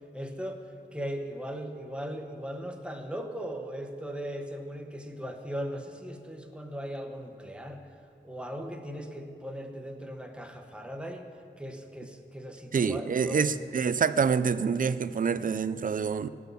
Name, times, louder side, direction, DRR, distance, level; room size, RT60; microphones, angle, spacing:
voice 1, 0.1-0.6 0.9-7.8 8.2-11.2 11.6-13.4, equal, 5° right, 4 dB, 1.0 m, -38 dB
voice 2, 12.7-16.3, right 6 dB, 45° right, 14 dB, 0.4 m, -26 dB
17.0 x 6.2 x 6.9 m, 2.5 s
wide cardioid pair, 100°, 19 cm